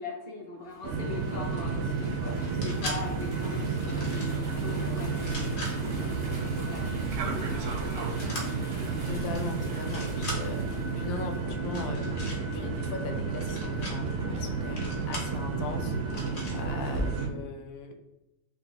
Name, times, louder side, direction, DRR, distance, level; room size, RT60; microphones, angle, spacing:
voice 1, 0.0-6.9 7.2-8.5, left 3 dB, 55° left, -1 dB, 0.7 m, -41 dB
sound 1, 0.6-11.4, equal, 25° right, 0.7 m, -46 dB
sound 2, 0.8-17.3, right 4 dB, 65° right, 0.8 m, -31 dB
sound 3, 2.4-3.0 3.8-4.4 5.1-5.7 8.2-8.4 9.2-9.4 9.7-10.4 11.6-12.4 13.3-13.9 14.8-15.3 16.1-16.6, equal, 40° left, 1.0 m, -39 dB
voice 2, 9.0-12.1 12.5-17.9, left 4 dB, 70° left, 5 dB, 1.0 m, -39 dB
3.9 x 2.3 x 3.9 m, 0.94 s
omnidirectional pair, 1.6 m